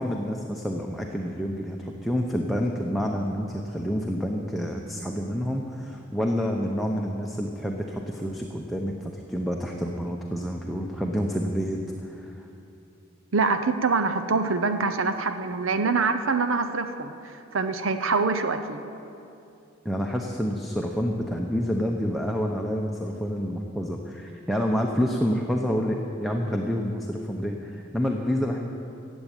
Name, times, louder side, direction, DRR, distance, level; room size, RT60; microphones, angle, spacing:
voice 1, 0.0-12.5 19.8-28.6, equal, ahead, 0 dB, 0.8 m, -28 dB
voice 2, 13.3-18.8, right 4 dB, 75° right, 9 dB, 0.7 m, -25 dB
15.5 x 8.0 x 9.0 m, 2.7 s
head